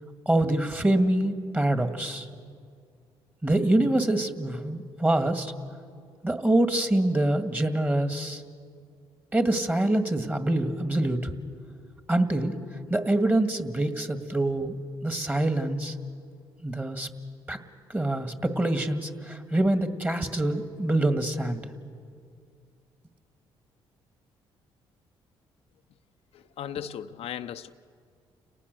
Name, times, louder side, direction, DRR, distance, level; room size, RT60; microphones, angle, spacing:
voice 1, 0.3-2.3 3.4-5.5 6.2-8.4 9.3-11.3 12.1-12.5 12.9-14.7 15.0-15.9 16.6-17.1 17.5-17.6 17.9-21.7, right 1 dB, 15° right, 2.0 m, -25 dB
voice 2, 26.3-27.7, left 9 dB, 70° left, 0.6 m, -36 dB
30.0 x 18.5 x 6.8 m
supercardioid pair, 70°, 11 cm